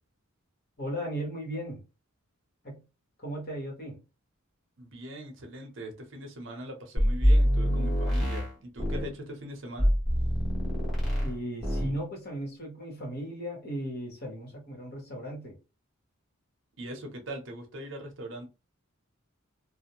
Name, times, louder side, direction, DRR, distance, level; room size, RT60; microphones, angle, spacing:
voice 1, 0.8-1.8 2.6-2.8 3.2-4.0 11.1-15.6, equal, 45° left, 1.2 m, -36 dB
voice 2, 4.8-9.9 16.8-18.5, right 1 dB, 60° right, 0.7 m, -41 dB
sound 1, 7.0-9.1 9.8-11.3 11.6-11.9, equal, ahead, 1.0 m, -25 dB
2.5 x 2.1 x 2.9 m
head